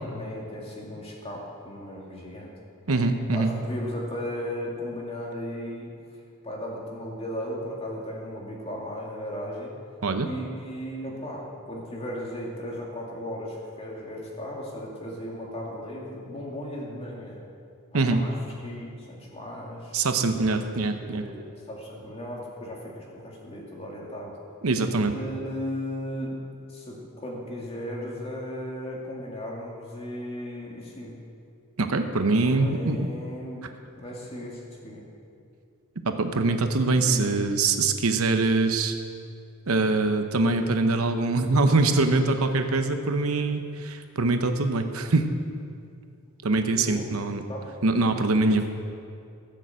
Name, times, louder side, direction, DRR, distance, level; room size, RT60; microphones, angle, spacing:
voice 1, 0.0-2.5 3.3-5.9 6.4-9.7 10.2-17.4 17.9-18.3 18.6-20.0 21.0-24.4 25.1-26.4 26.7-31.2 32.4-33.7 34.0-35.0 36.8-37.5 46.8-47.2 47.5-47.7 48.4-48.7, equal, 30° left, -3 dB, 2.3 m, -36 dB
voice 2, 2.9-3.5 10.0-10.3 17.9-18.2 19.9-21.2 24.6-25.1 31.8-33.1 36.0-39.0 39.7-45.3 46.4-47.4 47.8-48.6, right 3 dB, 70° right, 7 dB, 0.8 m, -23 dB
15.0 x 6.8 x 7.4 m, 2.5 s
head